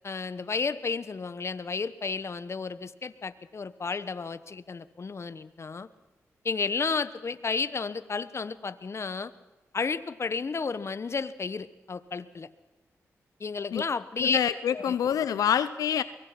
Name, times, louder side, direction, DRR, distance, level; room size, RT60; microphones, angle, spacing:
voice 1, 0.0-5.9 6.4-9.3 9.7-12.5 13.4-14.4 14.7-14.9, left 4 dB, 50° left, 15 dB, 1.2 m, -32 dB
voice 2, 14.2-16.0, left 9 dB, 85° left, 14 dB, 0.7 m, -26 dB
23.5 x 22.5 x 6.0 m, 1.1 s
cardioid pair, 55°, 6 cm